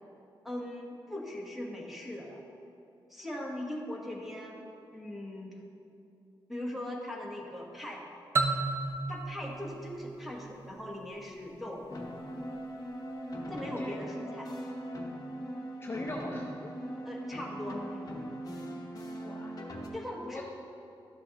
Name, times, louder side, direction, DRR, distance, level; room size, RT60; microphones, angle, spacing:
voice 1, 0.4-2.4 3.1-4.6 4.9-5.6 6.5-8.0 9.1-11.8 13.5-14.5 17.0-18.1 19.9-20.4, left 1 dB, ahead, -2 dB, 1.1 m, -40 dB
sound 1, 8.4-11.1, right 3 dB, 30° right, 0.5 m, -33 dB
sound 2, 11.9-19.9, equal, 45° left, 0.9 m, -40 dB
voice 2, 15.8-16.7 19.2-19.6 20.3-20.4, left 2 dB, 25° left, 0 dB, 0.5 m, -40 dB
12.5 x 6.2 x 2.9 m, 2.7 s
wide cardioid pair, 130°, 9 cm